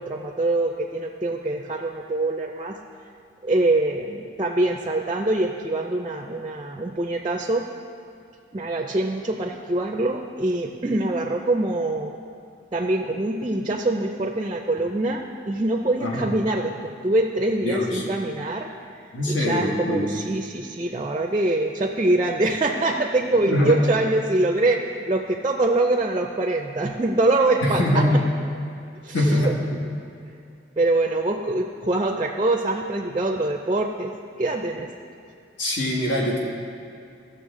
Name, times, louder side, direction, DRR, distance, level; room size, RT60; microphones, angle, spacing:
voice 1, 0.0-2.8 3.4-7.6 8.5-12.1 12.7-18.7 19.3-28.0 29.0-29.5 30.8-34.1 34.4-34.9, right 2 dB, 25° right, 2 dB, 0.4 m, -24 dB
voice 2, 16.0-16.3 17.6-18.0 19.1-20.1 23.5-23.8 27.6-28.2 29.1-29.8 35.6-36.4, left 1 dB, 80° left, -3 dB, 1.7 m, -23 dB
14.5 x 6.7 x 3.7 m, 2.5 s
head